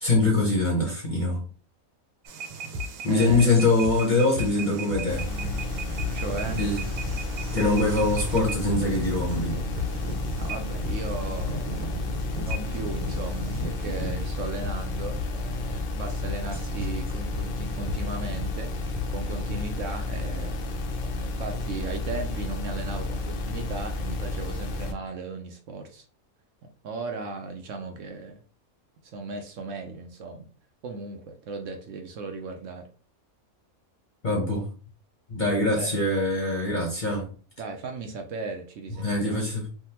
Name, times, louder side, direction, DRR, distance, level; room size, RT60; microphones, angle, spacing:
voice 1, 0.0-1.4 3.0-5.3 6.6-6.8 7.5-9.6 34.2-34.7 35.3-37.3 39.0-39.7, left 2 dB, 45° left, 0.7 m, -23 dB
sound 1, 2.3-14.1, right 4 dB, 90° right, 1.1 m, -39 dB
sound 2, 2.5-19.7, left 3 dB, 25° right, 1.6 m, -37 dB
voice 2, 3.1-3.5 6.1-6.6 10.4-12.0 12.4-20.6 21.0-26.0 26.8-28.4 29.1-30.5 30.8-32.9 35.7-36.0 37.6-39.5, right 3 dB, 70° right, 0.8 m, -36 dB
sound 3, 5.1-24.9, left 2 dB, 80° left, 0.4 m, -31 dB
3.5 x 2.2 x 2.8 m
omnidirectional pair, 1.5 m